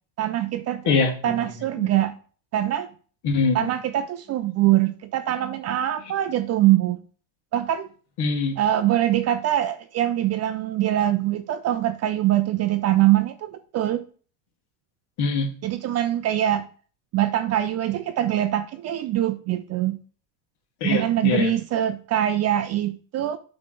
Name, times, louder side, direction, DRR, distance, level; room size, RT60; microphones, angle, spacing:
voice 1, 0.2-2.1 2.5-2.9 3.5-7.0 7.5-7.9 8.6-14.0 15.6-16.6 17.1-20.0 20.8-23.4, right 13 dB, 35° right, 0.4 m, -23 dB
voice 2, 0.9-1.3 1.8-1.9 3.2-3.7 8.2-8.6 15.2-15.5 20.8-21.5, left 4 dB, 55° left, 1.9 m, -23 dB
7.4 x 3.3 x 5.9 m
supercardioid pair, 115°, 47 cm